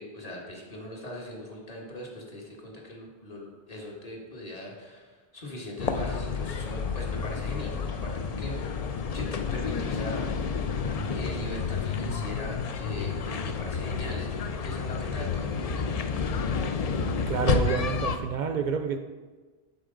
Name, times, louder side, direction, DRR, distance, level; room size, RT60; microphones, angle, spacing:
voice 1, 0.0-8.8 9.1-10.3 11.1-15.9, left 1 dB, 40° left, -1 dB, 1.4 m, -40 dB
sound 1, 5.8-18.2, left 5 dB, 55° left, 0.4 m, -30 dB
voice 2, 17.3-19.0, right 6 dB, 55° right, 7 dB, 0.6 m, -28 dB
7.9 x 5.9 x 3.8 m, 1.4 s
omnidirectional pair, 1.0 m